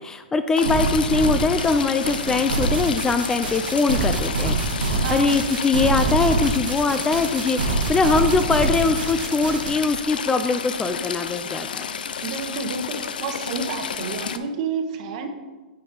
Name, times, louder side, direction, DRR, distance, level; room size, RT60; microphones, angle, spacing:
voice 1, 0.0-11.9, left 4 dB, 10° left, 10 dB, 0.3 m, -22 dB
Stream / Trickle dribble, 0.6-14.4, left 7 dB, 75° left, 0.5 m, -31 dB
sound 1, 0.6-9.7, right 3 dB, 75° right, 1.4 m, -25 dB
voice 2, 5.0-5.4 6.9-7.1 12.2-15.3, right 5 dB, 50° right, 5 dB, 1.1 m, -30 dB
9.1 x 4.6 x 3.9 m, 1.2 s
hypercardioid pair, 120°, 5 cm